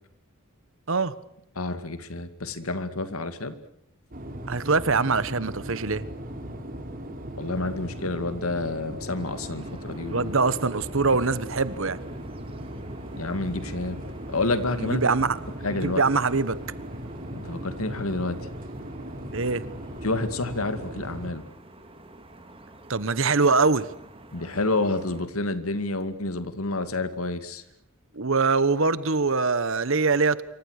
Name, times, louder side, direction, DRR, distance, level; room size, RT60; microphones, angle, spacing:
voice 1, 1.6-3.6 7.4-10.3 13.2-14.0 14.3-15.0 15.6-16.0 17.3-18.4 20.0-21.4 24.3-27.6, left 2 dB, 85° left, 11 dB, 2.3 m, -29 dB
sound 1, 4.1-21.3, right 1 dB, 40° right, 3.9 m, -38 dB
voice 2, 4.5-6.0 10.1-12.0 14.8-15.4 15.8-16.6 19.3-19.6 22.9-23.9 28.1-30.4, right 4 dB, 65° right, 16 dB, 1.2 m, -23 dB
sound 2, 9.2-25.3, right 2 dB, 25° right, 3.0 m, -49 dB
27.0 x 24.5 x 6.6 m, 0.78 s
head